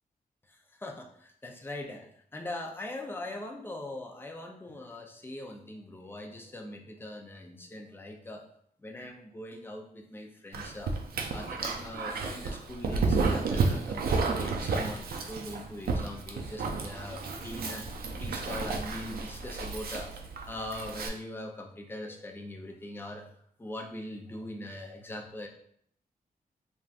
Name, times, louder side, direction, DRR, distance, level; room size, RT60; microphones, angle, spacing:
voice 1, 0.5-8.4 8.8-11.0 11.3-17.9 18.2-20.1 20.4-23.3 23.6-25.5, left 1 dB, 15° left, 2 dB, 0.4 m, -41 dB
Dog, 10.5-21.1, right 4 dB, 75° right, 0.4 m, -32 dB
3.4 x 2.6 x 2.4 m, 0.65 s
wide cardioid pair, 140°, 16 cm